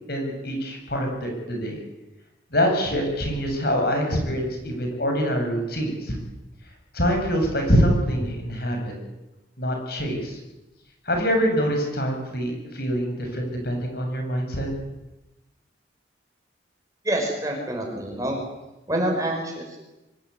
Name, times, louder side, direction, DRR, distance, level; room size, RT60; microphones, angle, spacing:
voice 1, 0.1-1.8 2.5-6.2 6.9-8.9 9.6-10.4 11.1-14.7, equal, 55° left, 3 dB, 7.2 m, -25 dB
voice 2, 17.0-18.4 18.9-19.8, right 1 dB, 15° right, 1 dB, 6.8 m, -26 dB
25.5 x 19.5 x 9.7 m, 0.99 s
head